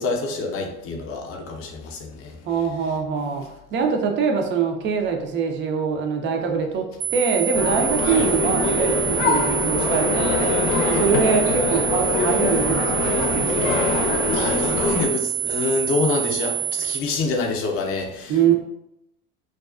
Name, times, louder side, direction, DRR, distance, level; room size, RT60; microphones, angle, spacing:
voice 1, 0.0-2.4 3.1-3.4 8.0-8.3 13.2-18.5, left 3 dB, 30° left, 1 dB, 0.5 m, -27 dB
voice 2, 2.5-3.4 3.7-6.8 7.1-10.5 10.9-13.7 18.3-18.5, right 6 dB, 30° right, 3 dB, 0.3 m, -23 dB
sound 1, 7.0-17.0, right 11 dB, 90° right, 0.6 m, -26 dB
sound 2, 7.5-15.1, left 4 dB, 75° left, 0.6 m, -23 dB
2.3 x 2.3 x 2.3 m, 0.82 s
hypercardioid pair, 85°, 44 cm